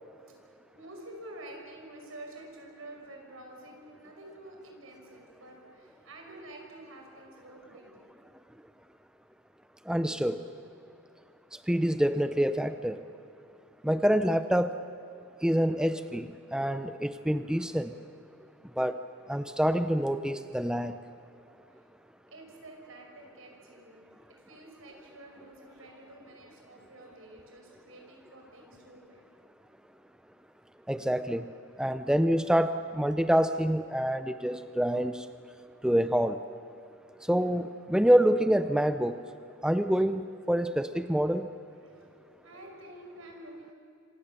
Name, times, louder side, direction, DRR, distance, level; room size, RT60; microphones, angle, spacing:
voice 1, 0.1-8.2 13.4-13.5 22.3-29.4 41.8-42.0 42.4-43.7, right 1 dB, 80° right, 1 dB, 5.8 m, -49 dB
voice 2, 9.9-10.4 11.7-13.0 13.8-14.8 15.4-17.9 18.8-19.0 19.3-21.0 30.9-31.5 31.8-35.2 35.8-36.4 37.3-39.2 39.6-41.5, equal, 5° right, 10 dB, 0.5 m, -26 dB
26.5 x 26.0 x 6.9 m, 2.6 s
head